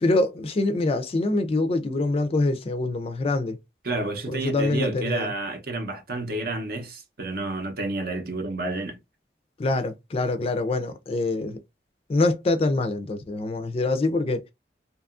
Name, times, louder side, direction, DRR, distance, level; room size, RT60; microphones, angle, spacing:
voice 1, 0.0-3.6 4.3-5.3 9.6-11.6 12.1-14.5, left 2 dB, 35° left, 0.3 m, -25 dB
voice 2, 3.8-9.0, right 2 dB, 55° right, 0.7 m, -30 dB
2.8 x 2.3 x 2.4 m
head